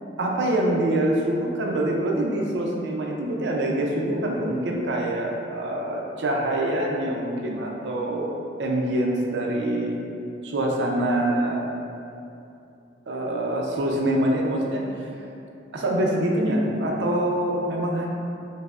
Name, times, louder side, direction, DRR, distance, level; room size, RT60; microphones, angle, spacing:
voice 1, 0.2-8.3 8.6-10.0 10.4-11.7 13.1-15.1 15.7-18.1, right 1 dB, 75° right, -1 dB, 0.5 m, -25 dB
5.3 x 2.0 x 2.4 m, 2.7 s
head